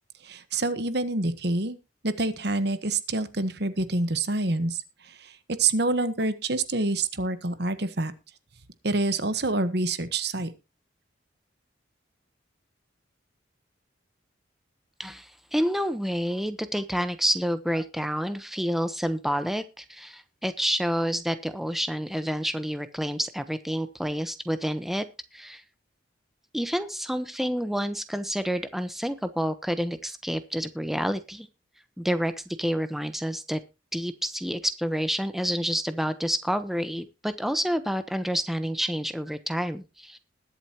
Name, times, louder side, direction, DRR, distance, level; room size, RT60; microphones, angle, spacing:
voice 1, 0.3-1.8 2.0-4.8 5.6-8.1 8.8-10.5, right 2 dB, 55° right, 12 dB, 1.3 m, -26 dB
voice 2, 15.0-25.0 25.3-25.6 26.5-31.5 32.0-33.6 33.9-40.2, equal, ahead, 10 dB, 1.0 m, -29 dB
20.5 x 8.0 x 3.0 m, 0.27 s
head